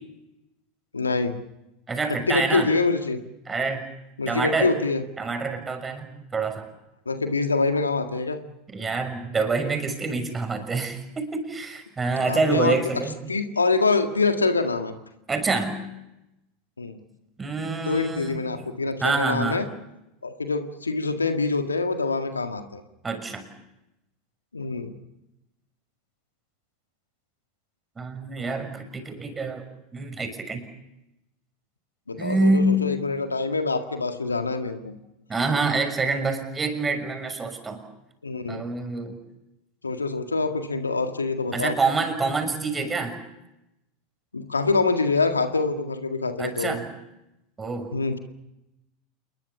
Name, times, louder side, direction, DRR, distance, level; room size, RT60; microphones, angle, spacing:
voice 1, 0.9-1.4 2.3-3.2 4.2-5.0 7.1-8.4 12.2-12.8 13.3-15.0 16.8-17.0 17.8-19.7 20.2-22.8 24.5-24.9 32.1-35.0 38.2-38.6 39.8-41.8 44.3-46.8 47.9-48.2, left 3 dB, 90° left, 7 dB, 1.9 m, -25 dB
voice 2, 1.9-2.7 3.5-3.8 4.3-4.7 5.2-6.7 8.7-13.2 15.3-15.8 17.4-18.4 19.0-19.6 23.0-23.4 28.0-29.6 29.9-30.7 32.2-32.8 35.3-37.8 38.5-39.2 41.5-43.2 46.4-46.9 47.6-48.0, right 3 dB, 20° right, 6 dB, 6.3 m, -26 dB
28.0 x 22.0 x 7.1 m, 0.91 s
figure-of-eight pair, 85°, 0 cm